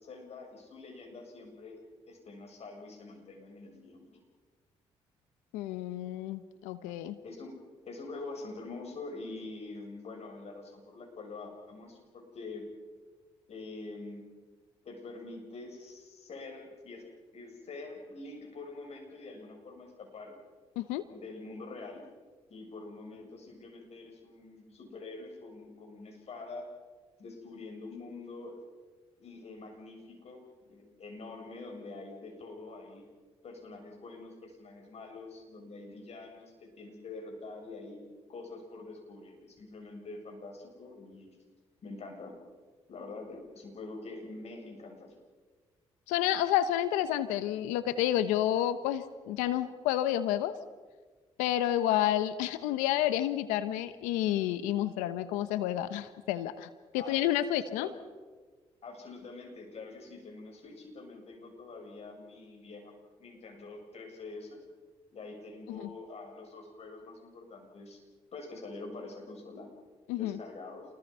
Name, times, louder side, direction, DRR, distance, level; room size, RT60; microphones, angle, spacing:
voice 1, 0.0-1.8 2.1-4.2 7.2-7.5 7.9-12.7 13.5-14.3 14.8-17.0 17.3-20.4 21.1-22.0 22.5-26.7 27.2-28.6 29.2-33.1 33.4-38.0 38.3-41.4 41.8-42.4 42.9-45.1 57.0-57.2 57.8-57.9 58.8-62.9 63.2-64.6 65.1-68.0 68.3-69.7 70.2-70.9, left 3 dB, 55° left, 3 dB, 7.3 m, -45 dB
voice 2, 5.5-7.2 20.8-21.0 46.1-50.5 51.4-56.7 56.9-57.9 65.7-65.9 70.1-70.4, left 12 dB, 90° left, 13 dB, 1.0 m, -30 dB
28.5 x 22.0 x 5.6 m, 1.4 s
supercardioid pair, 55°, 12 cm